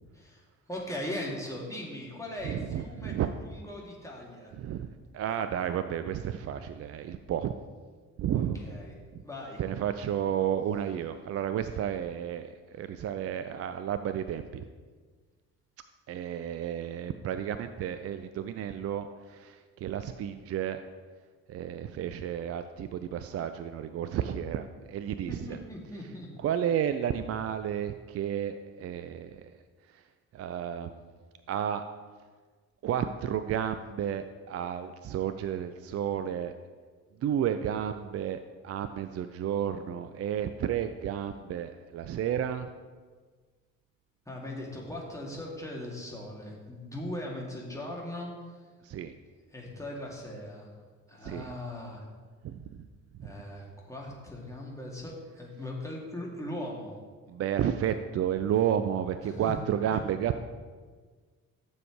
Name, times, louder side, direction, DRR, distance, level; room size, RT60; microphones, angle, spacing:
voice 1, 0.1-4.5 8.3-8.9 9.2-9.6 25.3-26.3 44.3-48.6 49.5-50.7 51.1-52.1 53.2-57.0 59.2-59.6 59.9-60.0, left 1 dB, 5° left, -3 dB, 2.6 m, -39 dB
voice 2, 2.4-3.3 4.6-7.5 8.2-8.6 9.6-14.6 16.1-20.8 21.5-25.6 26.4-29.5 30.3-30.9 31.5-31.8 32.8-36.5 37.2-42.7 48.8-49.1 51.2-51.5 52.4-52.6 53.2-53.3 57.3-60.4, right 9 dB, 35° right, 10 dB, 0.4 m, -32 dB
13.5 x 6.9 x 3.2 m, 1.5 s
figure-of-eight pair, 40°, 42 cm